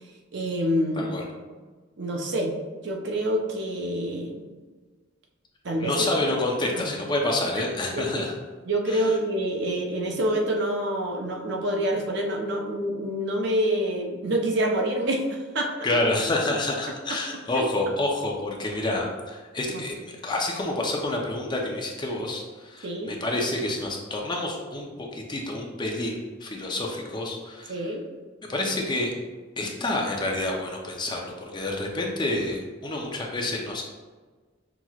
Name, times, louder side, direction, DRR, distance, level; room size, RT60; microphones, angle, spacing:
voice 1, 0.3-1.2 2.0-2.5 2.8-4.4 5.6-5.9 6.7-6.8 7.6-8.2 8.7-15.7 17.1-17.2 17.5-17.7 19.7-19.8 22.8-23.2 27.7-28.1, right 1 dB, 60° right, 1 dB, 0.7 m, -27 dB
voice 2, 1.0-1.3 5.8-8.3 8.9-9.0 15.8-20.0 20.2-24.9 25.1-27.9 28.5-29.1 29.6-33.8, left 2 dB, 25° left, 0 dB, 0.6 m, -28 dB
5.9 x 2.9 x 2.4 m, 1.4 s
head